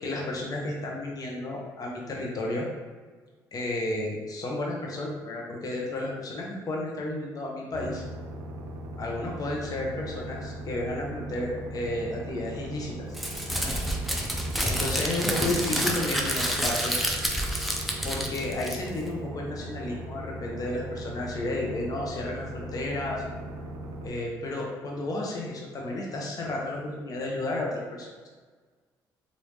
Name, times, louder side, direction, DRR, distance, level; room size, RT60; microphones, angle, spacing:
voice 1, 0.0-2.7 3.5-8.0 9.0-13.1 13.5-13.7 14.6-16.9 18.0-23.2 24.0-28.3, left 2 dB, 45° left, -2 dB, 0.8 m, -32 dB
sound 1, 7.7-24.1, right 1 dB, 65° right, 0.6 m, -39 dB
Crumpling crinkling, 13.1-19.1, equal, ahead, 0.6 m, -29 dB
3.4 x 2.6 x 3.1 m, 1.4 s
supercardioid pair, 75°, 8 cm